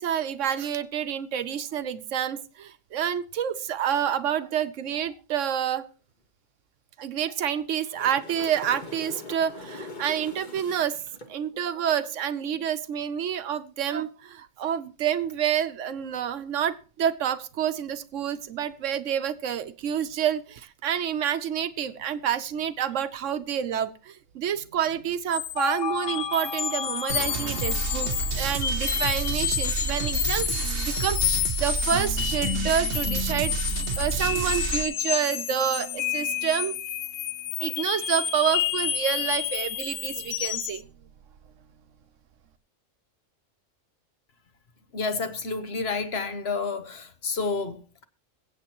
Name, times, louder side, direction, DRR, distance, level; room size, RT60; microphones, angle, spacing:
voice 1, 0.0-5.8 7.0-11.0 11.3-28.1 28.4-33.5 34.0-36.8 37.6-40.8, right 9 dB, 75° right, 1.1 m, -28 dB
sound 1, 7.7-11.3 15.1-15.3, left 2 dB, 35° left, 1.5 m, -42 dB
sound 2, 25.3-40.8, left 10 dB, 80° left, 1.1 m, -29 dB
sound 3, 27.1-34.8, right 5 dB, 55° right, 0.9 m, -30 dB
voice 2, 44.9-48.0, left 4 dB, 55° left, 1.2 m, -30 dB
22.5 x 8.3 x 3.0 m
omnidirectional pair, 1.3 m